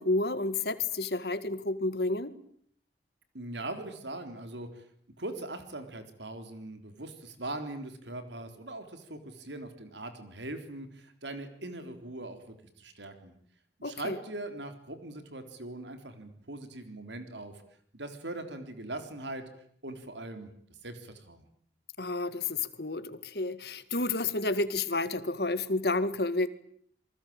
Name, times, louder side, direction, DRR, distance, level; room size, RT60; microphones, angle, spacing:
voice 1, 0.0-2.3 13.8-14.2 22.0-26.5, left 2 dB, 60° left, 12 dB, 2.0 m, -30 dB
voice 2, 3.3-4.9 5.2-13.3 13.8-17.6 17.9-19.4 19.8-20.5 20.8-21.4, right 2 dB, 80° right, 8 dB, 3.9 m, -41 dB
27.5 x 24.0 x 8.9 m, 0.63 s
head